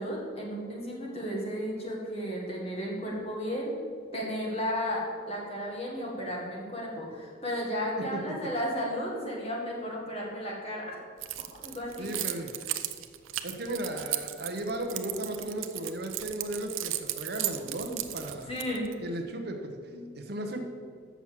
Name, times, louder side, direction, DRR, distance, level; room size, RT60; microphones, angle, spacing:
voice 1, 0.0-3.8 4.1-11.0 11.6-12.6 18.5-18.9 19.9-20.1, equal, 30° left, -2 dB, 1.8 m, -34 dB
Keys jangling, 11.2-18.9, right 14 dB, 85° right, 0.5 m, -35 dB
voice 2, 12.0-12.6 13.4-18.5 19.0-19.8 20.2-20.6, right 1 dB, 50° right, 4 dB, 0.9 m, -35 dB
7.0 x 6.0 x 7.5 m, 2.2 s
head